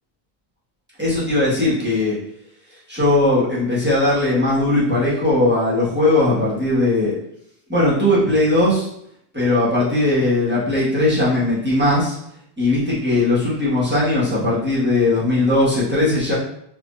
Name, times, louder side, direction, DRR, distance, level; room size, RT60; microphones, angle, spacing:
voice 1, 1.0-2.1 2.9-7.2 7.7-8.9 9.3-12.2 12.6-16.3, left 2 dB, 10° right, -9 dB, 1.6 m, -18 dB
4.5 x 3.3 x 2.6 m, 0.73 s
omnidirectional pair, 1.1 m